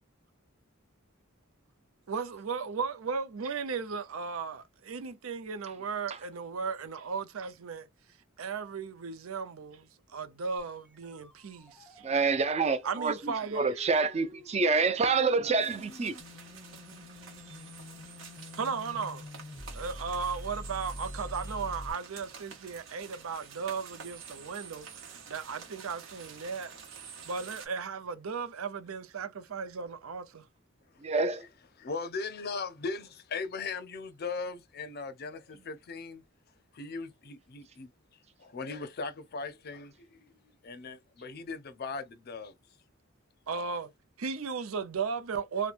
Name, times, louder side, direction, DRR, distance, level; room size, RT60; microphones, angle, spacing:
voice 1, 2.1-7.9 8.4-12.1 12.8-13.9 18.6-19.3 19.7-26.7 27.2-30.5 43.5-43.9 44.2-45.7, right 5 dB, 85° right, 0.6 m, -36 dB
sound 1, 10.6-21.9, left 1 dB, 5° left, 0.7 m, -46 dB
voice 2, 12.0-16.1 31.0-31.5, right 4 dB, 30° right, 0.5 m, -27 dB
sound 2, 15.6-27.7, right 6 dB, 70° right, 1.0 m, -49 dB
voice 3, 31.8-36.2 36.7-37.9 38.4-40.3 40.6-42.5, left 4 dB, 50° left, 0.5 m, -38 dB
2.9 x 2.1 x 2.4 m
head